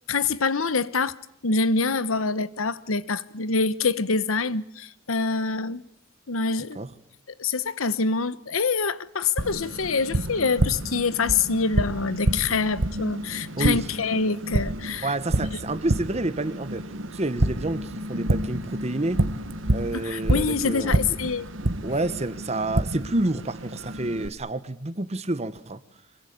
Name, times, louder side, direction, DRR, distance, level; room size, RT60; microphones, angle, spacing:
voice 1, 0.1-1.2 1.4-5.8 6.3-6.8 7.4-15.1 19.9-21.5, left 4 dB, 85° left, 1.1 m, -25 dB
Tap, 9.4-24.3, right 1 dB, 70° right, 1.3 m, -28 dB
voice 2, 13.6-13.9 15.0-19.2 19.7-20.9 21.8-25.8, right 2 dB, 30° right, 1.2 m, -29 dB
25.5 x 22.5 x 8.7 m
head